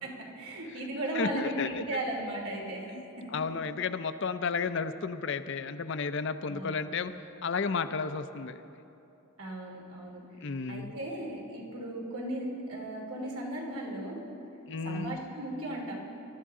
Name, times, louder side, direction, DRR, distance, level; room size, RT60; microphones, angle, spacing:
voice 1, 0.0-2.9 3.2-3.3 6.5-7.1 9.4-14.2 14.8-15.9, right 1 dB, 85° right, -2 dB, 2.7 m, -37 dB
voice 2, 1.2-1.8 2.9-3.0 3.3-7.1 7.4-8.6 10.4-10.9 14.6-15.2, left 5 dB, 55° left, 11 dB, 0.5 m, -32 dB
21.5 x 12.5 x 3.7 m, 2.9 s
head